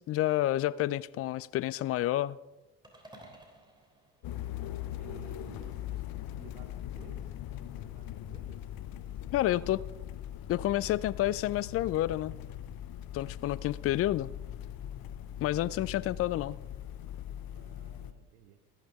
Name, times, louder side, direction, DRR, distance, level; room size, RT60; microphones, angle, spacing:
voice 1, 0.0-2.4 9.3-9.8 10.5-12.3 13.1-14.3 15.4-16.6, left 14 dB, 35° left, 21 dB, 0.4 m, -29 dB
sound 1, 2.8-5.2, right 1 dB, 10° right, 3.1 m, -55 dB
sound 2, 4.2-18.1, left 11 dB, 50° left, 0.8 m, -41 dB
voice 2, 4.2-8.6 17.5-18.6, right 10 dB, 80° right, 7 dB, 0.9 m, -56 dB
13.5 x 12.0 x 3.5 m, 1.1 s
hypercardioid pair, 60°, 46 cm